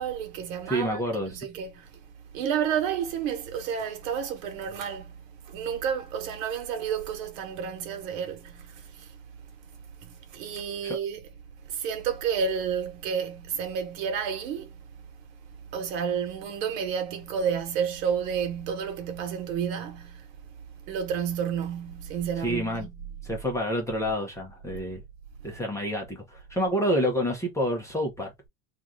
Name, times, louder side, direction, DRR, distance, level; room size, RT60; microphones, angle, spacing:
voice 1, 0.0-1.9 2.3-5.1 5.5-9.1 10.0-11.2 11.7-14.7 15.7-20.3 20.9-22.9, right 7 dB, 65° right, 1.2 m, -31 dB
voice 2, 0.7-1.4 10.8-11.0 22.4-22.9 23.2-25.0 25.4-28.3, equal, 5° left, 0.6 m, -28 dB
3.0 x 2.5 x 3.6 m
supercardioid pair, 160°, 42 cm